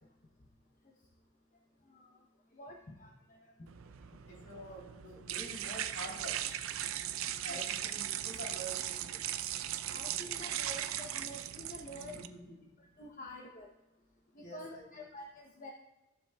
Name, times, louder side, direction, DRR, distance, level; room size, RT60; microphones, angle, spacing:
voice 1, 2.5-3.5 7.5-7.7 9.9-12.2 12.8-13.7 14.4-15.7, left 1 dB, 35° left, 1 dB, 0.8 m, -48 dB
sound 1, 3.7-12.3, right 11 dB, 70° right, 0.5 m, -38 dB
voice 2, 4.2-6.5 7.4-9.5 12.0-12.6 14.3-15.0, equal, 55° left, -3 dB, 3.1 m, -47 dB
15.5 x 7.2 x 2.3 m, 1.1 s
head